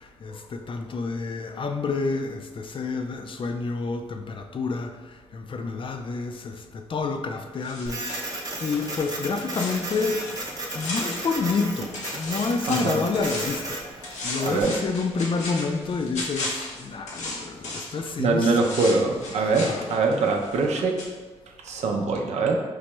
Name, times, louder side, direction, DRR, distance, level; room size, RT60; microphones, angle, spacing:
voice 1, 0.0-18.6 19.3-20.0, left 4 dB, 50° left, 0.4 m, -29 dB
sound 1, 7.6-11.7 11.9-13.7 14.0-18.0 18.4-20.7 21.0-21.1, left 2 dB, 85° left, 0.7 m, -36 dB
Printer, 7.9-14.6, right 2 dB, 35° right, 0.7 m, -34 dB
voice 2, 12.7-13.0 14.4-14.7 18.2-21.0 21.6-22.6, right 3 dB, 75° right, 0.5 m, -23 dB
4.5 x 2.1 x 3.0 m
cardioid pair, 55°, 12 cm